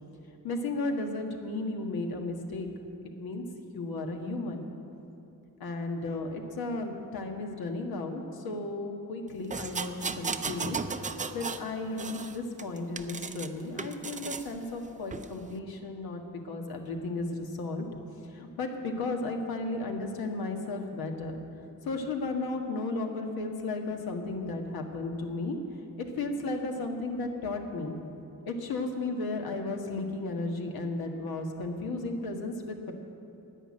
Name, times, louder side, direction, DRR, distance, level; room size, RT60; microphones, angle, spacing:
voice 1, 0.4-2.7 3.2-3.4 3.7-4.7 5.6-10.8 11.3-17.9 18.3-21.4 21.8-25.6 26.0-28.0 28.5-32.9, left 2 dB, 80° left, 3 dB, 1.6 m, -34 dB
sound 1, 9.5-11.7 12.0-13.5 13.8-14.5 15.1-15.3, right 4 dB, 20° right, 0.5 m, -35 dB
11.0 x 9.3 x 8.6 m, 2.9 s
cardioid pair, 105°, 35 cm